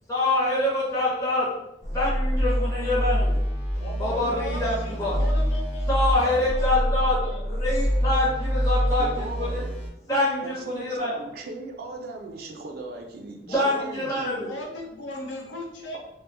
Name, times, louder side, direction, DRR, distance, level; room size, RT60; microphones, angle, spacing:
voice 1, 0.1-1.5 1.9-3.4 4.0-5.2 5.9-9.6 10.1-11.1 13.5-14.5, left 1 dB, 20° left, -7 dB, 0.6 m, -25 dB
sound 1, 1.8-9.9, equal, 35° left, 0.9 m, -26 dB
voice 2, 3.8-6.6 7.2-7.4 13.5-16.0, left 1 dB, 85° left, 1 dB, 0.6 m, -37 dB
voice 3, 9.0-9.7 10.1-10.2 10.4-14.5, right 3 dB, 55° right, 2 dB, 0.4 m, -38 dB
2.2 x 2.0 x 3.5 m, 0.87 s
head